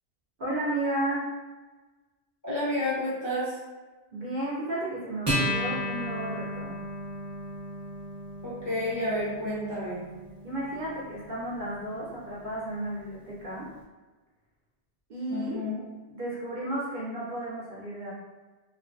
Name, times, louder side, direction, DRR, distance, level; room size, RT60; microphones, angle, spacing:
voice 1, 0.4-1.2 4.1-6.7 10.4-13.7 15.1-15.6 16.1-18.1, right 1 dB, 55° right, -7 dB, 0.6 m, -33 dB
voice 2, 2.4-3.6 8.4-10.0 15.3-15.8, left 1 dB, 25° left, -9 dB, 0.4 m, -30 dB
Acoustic guitar, 5.3-12.1, equal, 15° right, 0.7 m, -34 dB
2.4 x 2.1 x 2.5 m, 1.3 s
omnidirectional pair, 1.2 m